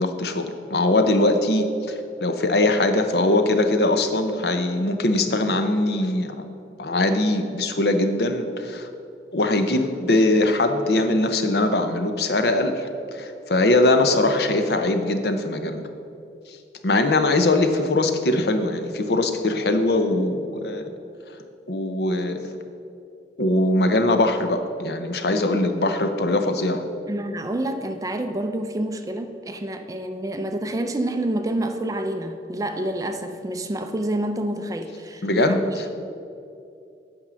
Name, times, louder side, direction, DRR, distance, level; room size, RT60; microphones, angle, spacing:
voice 1, 0.0-6.4 6.8-8.9 9.3-15.8 16.8-20.8 21.7-22.5 23.4-26.9 35.2-35.6, left 2 dB, 60° left, 7 dB, 0.7 m, -21 dB
voice 2, 27.1-36.0, right 1 dB, 20° right, 7 dB, 0.5 m, -28 dB
8.9 x 5.4 x 6.2 m, 2.6 s
head